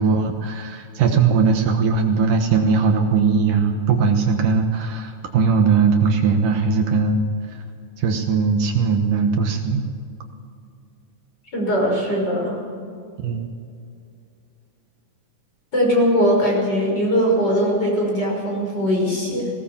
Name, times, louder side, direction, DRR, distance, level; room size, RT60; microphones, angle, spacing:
voice 1, 0.0-7.2 8.0-9.8 13.2-13.5, right 5 dB, 70° right, 4 dB, 2.8 m, -19 dB
voice 2, 11.5-12.6 15.7-19.5, equal, 30° left, -1 dB, 6.2 m, -20 dB
20.0 x 18.0 x 7.3 m, 2.4 s
omnidirectional pair, 4.1 m